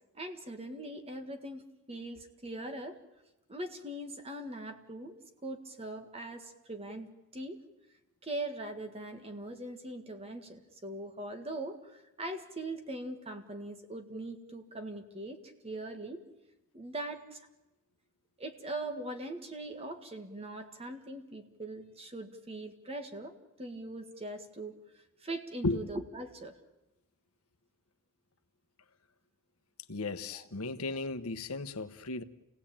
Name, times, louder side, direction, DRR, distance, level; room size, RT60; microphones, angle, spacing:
voice 1, 0.1-3.0 3.5-5.2 5.4-7.6 8.2-15.4 15.6-16.2 16.7-17.5 18.4-26.6 30.3-30.4, right 1 dB, 30° right, 1.8 m, -41 dB
voice 2, 29.9-32.2, left 2 dB, 85° left, 1.1 m, -35 dB
28.0 x 17.0 x 8.8 m
head